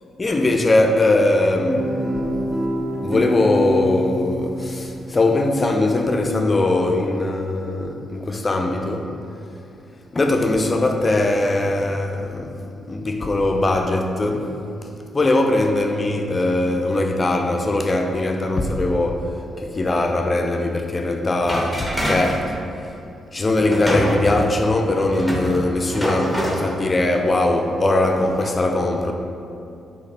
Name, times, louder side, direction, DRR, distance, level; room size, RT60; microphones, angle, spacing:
voice 1, 0.2-1.9 3.0-9.1 10.1-14.6 15.1-19.3 19.6-22.6 23.3-29.1, left 2 dB, 30° left, 0.4 m, -20 dB
Guitar, 1.7-6.0, right 1 dB, 30° right, 0.7 m, -27 dB
sound 1, 21.4-22.4 23.7-26.7 27.3-27.5 28.1-28.5, equal, 5° left, 0.9 m, -26 dB
4.6 x 2.9 x 3.4 m
cardioid pair, 70°, 0 cm